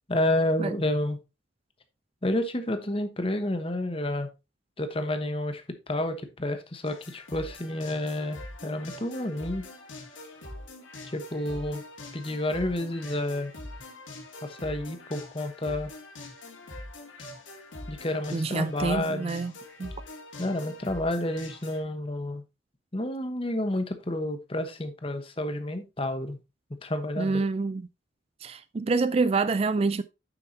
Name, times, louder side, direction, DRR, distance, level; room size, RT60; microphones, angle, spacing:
voice 1, 0.1-1.2 2.2-4.3 4.8-9.6 11.0-11.8 12.1-13.5 14.4-15.9 17.9-19.3 20.4-22.4 22.9-26.4 26.8-27.4, left 1 dB, 30° left, 1.1 m, -30 dB
sound 1, 6.9-21.8, left 2 dB, 80° left, 2.7 m, -44 dB
voice 2, 18.3-19.5 19.8-19.9 27.2-27.9 28.4-30.0, right 4 dB, 30° right, 0.3 m, -27 dB
9.1 x 7.0 x 2.8 m
head